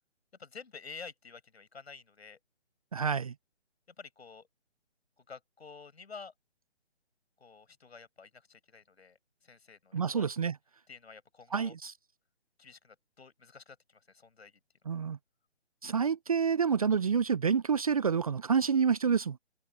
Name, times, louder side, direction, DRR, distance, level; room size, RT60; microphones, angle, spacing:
voice 1, 0.4-2.4 4.0-4.5 5.2-6.3 7.4-10.2 10.9-11.8 12.6-14.6, left 5 dB, 65° left, 7.9 m, -50 dB
voice 2, 2.9-3.3 9.9-10.6 11.5-11.9 14.9-15.2 15.8-19.4, right 6 dB, 30° right, 0.6 m, -28 dB
figure-of-eight pair, 150°, 34 cm